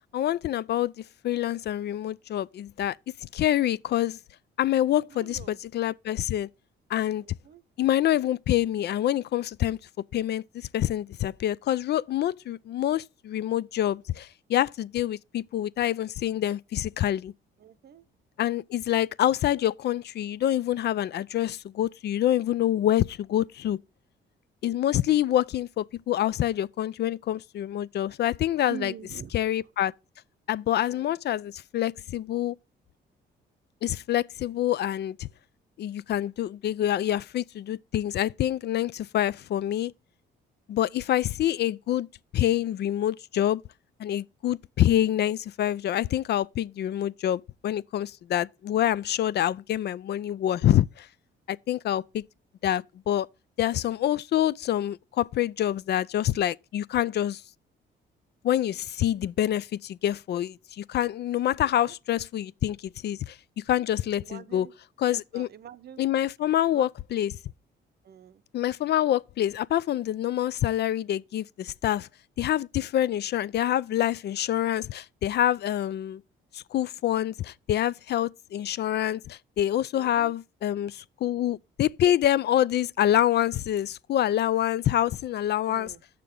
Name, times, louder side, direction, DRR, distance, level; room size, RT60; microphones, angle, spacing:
voice 1, 0.1-0.9 1.2-3.0 3.2-4.2 4.6-6.5 6.9-7.2 7.8-9.8 10.1-17.3 18.4-23.8 24.6-28.9 29.3-29.9 30.5-32.6 33.8-35.3 35.8-39.9 40.7-42.1 42.3-43.6 44.0-51.1 51.5-52.2 52.6-53.3 53.6-57.4 58.4-62.8 63.0-63.4 63.7-64.7 65.0-65.5 66.0-67.3 68.5-72.1 72.4-76.2 76.5-85.9, left 12 dB, 60° left, 0.4 m, -26 dB
voice 2, 5.1-5.6 7.2-7.6 17.6-18.0 28.7-29.3 30.9-31.1 61.6-61.9 64.2-64.7 65.1-66.0 66.7-66.9 68.0-68.4 79.9-80.3 85.7-86.0, right 10 dB, 55° right, 0.7 m, -44 dB
8.0 x 6.7 x 3.7 m
cardioid pair, 90°, 20 cm